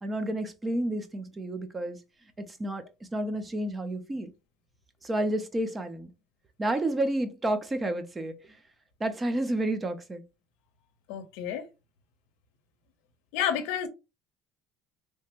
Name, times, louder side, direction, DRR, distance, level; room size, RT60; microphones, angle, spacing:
voice 1, 0.0-2.0 2.4-2.8 3.1-4.3 5.0-6.1 6.6-8.4 9.0-10.2, right 1 dB, 15° right, 0.4 m, -30 dB
voice 2, 11.1-11.7 13.3-13.9, left 9 dB, 85° left, 0.6 m, -30 dB
3.3 x 2.0 x 2.9 m
cardioid pair, 155°, 0 cm